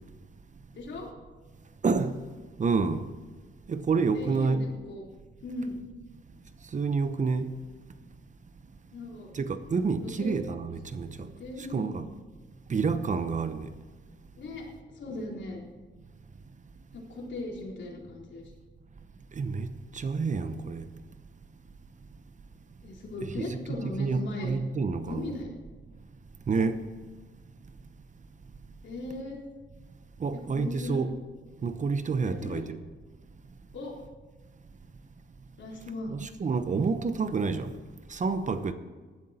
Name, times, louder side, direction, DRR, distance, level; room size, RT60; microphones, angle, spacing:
voice 1, 0.7-1.1 4.1-5.1 5.4-5.8 8.9-9.3 10.0-10.3 11.2-12.1 14.4-14.7 14.9-15.6 16.9-18.5 22.8-24.6 25.1-25.5 28.8-29.4 30.3-31.0 32.2-32.7 33.7-33.9 35.6-36.1, left 2 dB, 65° left, 3.7 m, -38 dB
voice 2, 1.8-2.2 2.6-3.0 3.7-4.6 6.7-7.5 9.3-11.3 11.6-12.1 12.7-13.7 19.4-20.9 23.2-23.6 24.0-25.3 26.5-26.9 30.2-31.1 31.6-32.8 36.1-37.7 38.1-38.7, right 4 dB, 35° right, 0.9 m, -28 dB
15.5 x 12.0 x 4.3 m
cardioid pair, 105°, 20 cm